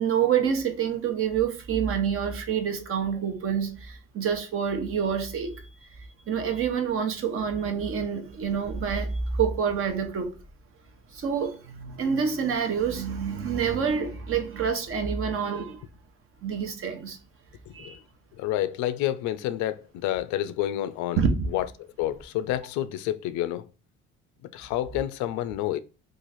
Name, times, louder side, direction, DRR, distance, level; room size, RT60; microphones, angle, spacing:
voice 1, 0.0-5.6 6.0-10.3 11.1-15.8 16.4-17.2 17.7-18.0 21.2-21.5, right 7 dB, 50° right, 0.9 m, -27 dB
voice 2, 17.7-18.0 18.4-21.2 21.5-23.7 24.5-25.8, left 13 dB, 75° left, 0.4 m, -29 dB
3.0 x 2.5 x 3.9 m
cardioid pair, 110°, 29 cm